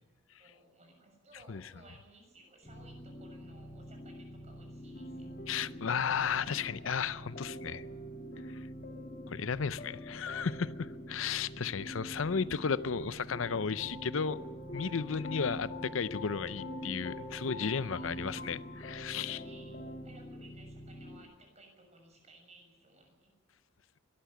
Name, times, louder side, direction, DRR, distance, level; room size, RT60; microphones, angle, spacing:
voice 1, 0.4-5.4 15.1-15.4 16.5-16.7 17.7-18.4 19.3-23.3, right 2 dB, 35° right, 6.6 m, -59 dB
sound 1, 2.6-21.2, left 1 dB, 20° left, 5.0 m, -48 dB
sound 2, 4.9-20.0, equal, 45° left, 2.0 m, -46 dB
voice 2, 5.5-7.8 8.4-8.7 9.3-14.4 14.7-19.4, left 6 dB, 85° left, 0.6 m, -34 dB
22.5 x 13.5 x 9.2 m
head